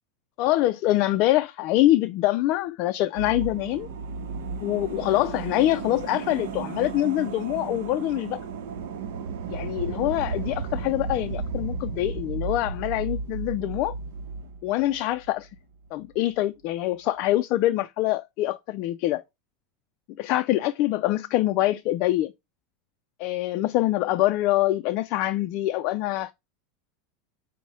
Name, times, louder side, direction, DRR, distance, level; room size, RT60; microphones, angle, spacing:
voice 1, 0.4-3.9 4.6-8.4 9.5-14.0 14.6-15.5 15.9-19.2 20.2-22.3 23.2-26.3, left 15 dB, 50° left, 0.3 m, -24 dB
sound 1, 3.2-15.6 15.8-15.9, right 5 dB, 75° right, 0.7 m, -34 dB
6.0 x 2.1 x 4.0 m
supercardioid pair, 140°, 0 cm